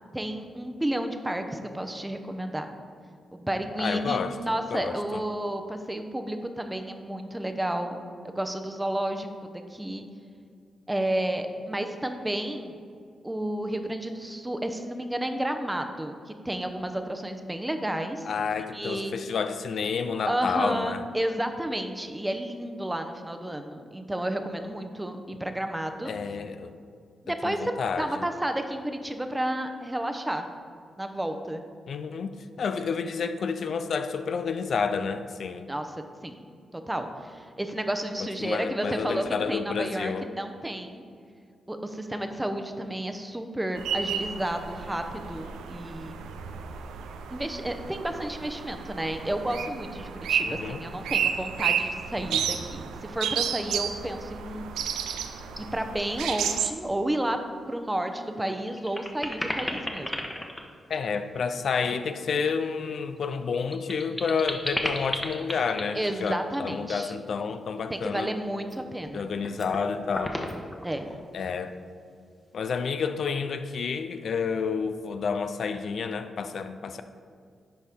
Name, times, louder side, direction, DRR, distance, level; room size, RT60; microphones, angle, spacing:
voice 1, 0.1-2.7 3.3-10.1 10.9-12.8 13.2-18.3 18.7-19.1 20.3-26.1 27.2-30.4 31.0-31.6 35.7-35.9 36.2-36.4 36.7-41.0 41.7-46.2 47.3-54.7 55.7-57.4 57.7-60.2 65.9-67.1 67.9-69.3 70.8-71.1, right 1 dB, 15° right, 6 dB, 0.7 m, -31 dB
voice 2, 3.8-4.4 4.7-5.2 18.3-21.0 26.0-26.7 27.4-28.2 31.9-32.3 32.6-35.7 38.2-40.3 50.4-50.8 60.9-68.3 69.1-70.5 71.3-71.8 72.5-77.0, left 5 dB, 70° left, 9 dB, 0.3 m, -30 dB
sound 1, 43.8-56.7, right 7 dB, 90° right, 0.4 m, -32 dB
sound 2, 55.3-55.6 56.0-56.4 56.7-56.8 58.0-58.1 58.5-61.6 63.2-66.6 68.6-69.1 69.4-69.8 70.1-71.2, left 1 dB, 10° left, 1.0 m, -34 dB
11.0 x 4.2 x 3.6 m, 2.2 s
supercardioid pair, 50°, 0 cm